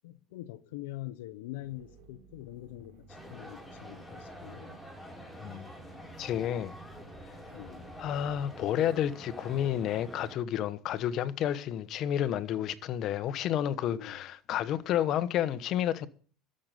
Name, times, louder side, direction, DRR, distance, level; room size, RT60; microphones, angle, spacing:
voice 1, 0.0-4.8 7.5-7.9 13.9-14.2, left 16 dB, 85° left, 0.8 m, -44 dB
sound 1, 1.6-8.4, right 3 dB, 70° right, 3.8 m, -56 dB
sound 2, 3.1-10.4, equal, 5° left, 4.6 m, -47 dB
voice 2, 5.4-5.7 6.2-6.8 8.0-16.1, left 10 dB, 50° left, 1.1 m, -30 dB
13.0 x 6.7 x 9.2 m
supercardioid pair, 110°, 0 cm